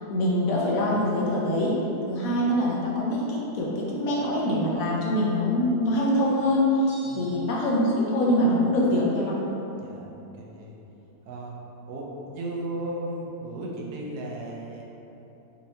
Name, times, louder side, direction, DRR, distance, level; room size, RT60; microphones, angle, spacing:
voice 1, 0.1-1.8 2.1-9.4, left 1 dB, 65° left, -5 dB, 0.9 m, -24 dB
sound 1, 6.9-7.8, right 1 dB, 85° left, 1.6 m, -49 dB
voice 2, 9.8-10.8 11.2-11.6 11.9-14.8, right 1 dB, 80° right, -2 dB, 1.1 m, -35 dB
4.2 x 2.9 x 2.7 m, 3.0 s
omnidirectional pair, 1.7 m